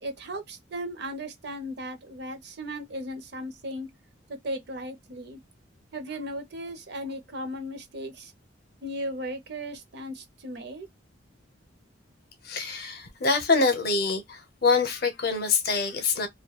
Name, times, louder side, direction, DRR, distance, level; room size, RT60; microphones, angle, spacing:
voice 1, 0.0-3.9 4.3-5.4 5.9-8.3 8.8-10.9, equal, 55° right, 0.6 m, -36 dB
voice 2, 12.4-16.3, left 4 dB, 50° left, 0.6 m, -25 dB
2.2 x 2.2 x 2.7 m
head